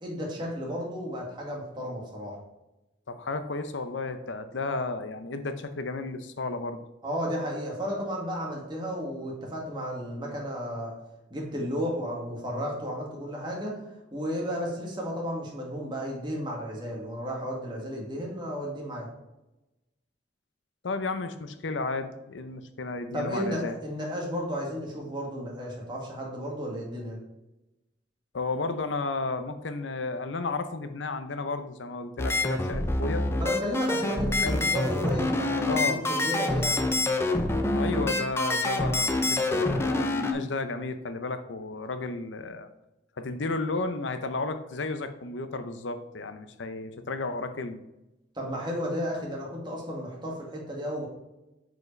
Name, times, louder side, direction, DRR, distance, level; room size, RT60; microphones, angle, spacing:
voice 1, 0.0-2.4 7.0-10.9 11.3-13.8 14.1-19.1 23.1-27.2 33.3-36.9 48.3-51.1, equal, 25° right, -2 dB, 2.0 m, -33 dB
voice 2, 3.1-6.8 20.8-23.8 28.3-33.2 34.0-34.6 35.6-36.0 37.7-42.7 43.2-47.8, left 3 dB, 75° left, 9 dB, 0.7 m, -33 dB
sound 1, 32.2-40.3, left 2 dB, 15° left, 0.6 m, -26 dB
7.9 x 5.0 x 3.3 m, 0.98 s
head